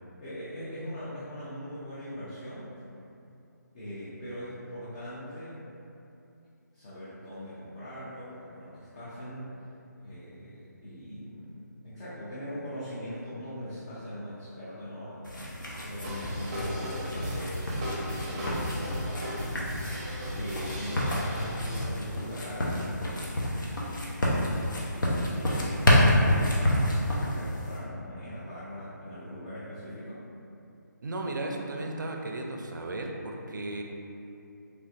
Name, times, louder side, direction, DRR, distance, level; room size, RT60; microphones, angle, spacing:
voice 1, 0.2-2.7 3.7-5.7 6.7-9.5 9.9-15.2 15.8-17.7 18.2-24.6 24.9-30.2, equal, 25° left, -11 dB, 0.5 m, -41 dB
sound 1, 15.2-27.8, left 1 dB, 80° left, 0.7 m, -29 dB
sound 2, 16.0-21.8, equal, 25° right, 0.6 m, -35 dB
voice 2, 31.0-33.8, right 2 dB, 75° right, 1 dB, 0.4 m, -35 dB
3.3 x 2.5 x 2.4 m, 2.7 s
figure-of-eight pair, 160°, 10 cm